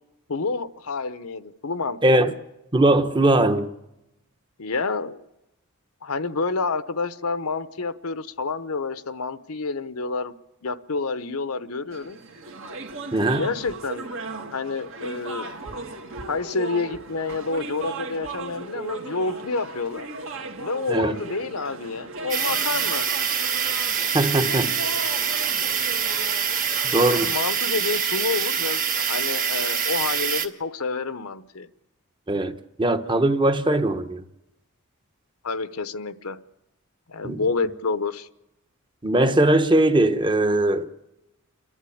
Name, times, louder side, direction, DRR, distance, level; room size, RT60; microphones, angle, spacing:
voice 1, 0.3-2.2 4.6-5.2 6.0-10.3 10.6-12.2 13.3-14.1 14.5-15.5 16.3-20.1 20.6-23.1 27.0-31.7 35.4-36.4 37.1-38.3, left 4 dB, 70° left, 0.9 m, -28 dB
voice 2, 2.0-2.3 2.7-3.7 13.1-13.5 20.9-21.2 24.0-24.7 26.9-27.3 32.3-34.2 37.2-37.4 39.0-40.9, right 1 dB, 20° right, 1.1 m, -20 dB
sound 1, 11.9-27.4, right 3 dB, 65° right, 2.0 m, -37 dB
sound 2, 22.3-30.5, right 7 dB, 40° right, 1.4 m, -25 dB
29.0 x 11.0 x 8.6 m
head